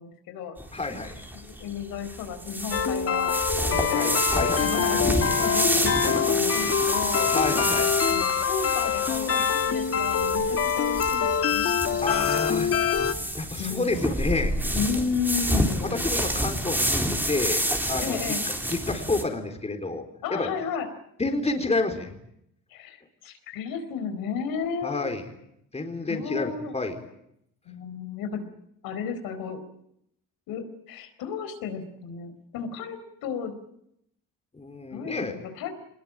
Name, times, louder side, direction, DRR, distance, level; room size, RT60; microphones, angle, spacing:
voice 1, 0.0-0.5 1.3-4.2 4.6-7.3 8.1-12.4 13.6-14.1 14.7-16.0 18.0-18.4 20.2-20.9 22.7-25.1 26.1-26.8 27.6-28.5 28.8-29.6 30.5-33.5 34.9-35.7, left 6 dB, 80° left, 8 dB, 4.5 m, -33 dB
sound 1, 0.6-19.2, right 1 dB, 5° right, 3.8 m, -29 dB
voice 2, 0.7-1.2 3.7-4.9 7.3-7.9 12.0-12.7 13.4-14.6 15.8-17.6 17.9-18.2 18.7-20.5 21.2-22.1 24.8-25.3 25.7-27.0 34.5-35.3, left 3 dB, 20° left, 5 dB, 4.2 m, -29 dB
sound 2, 2.7-13.1, left 7 dB, 40° left, 1.6 m, -25 dB
23.5 x 21.0 x 9.0 m, 0.75 s
cardioid pair, 105°, 35 cm